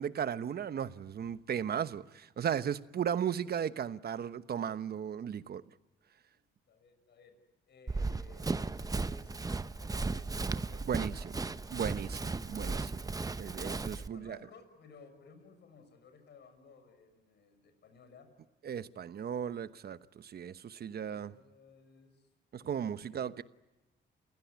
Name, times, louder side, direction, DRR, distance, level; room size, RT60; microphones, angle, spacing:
voice 1, 0.0-5.6 10.9-11.4 11.7-12.9 13.4-14.4 18.6-21.3 22.5-23.4, right 8 dB, 50° right, 1.1 m, -36 dB
voice 2, 6.7-7.3 7.7-9.5 9.8-11.3 13.5-18.3 20.9-22.3 22.7-23.4, left 4 dB, 60° left, 6.4 m, -58 dB
Run, 7.9-14.1, right 3 dB, 20° right, 0.8 m, -36 dB
29.0 x 16.5 x 9.5 m
cardioid pair, 90°, 20 cm